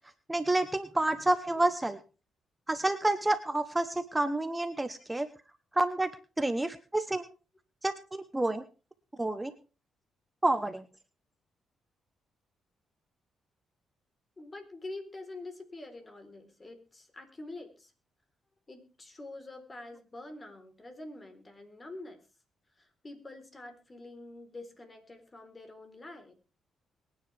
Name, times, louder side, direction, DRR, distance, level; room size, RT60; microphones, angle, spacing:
voice 1, 0.3-2.0 2.7-5.3 5.7-6.1 6.4-7.3 7.8-8.6 9.2-9.5 10.4-10.8, right 2 dB, 15° right, 11 dB, 1.0 m, -29 dB
voice 2, 14.4-17.9 18.7-22.2 22.8-26.3, left 2 dB, 30° left, 6 dB, 4.1 m, -46 dB
22.5 x 9.8 x 3.5 m, 0.34 s
cardioid pair, 75°, 0 cm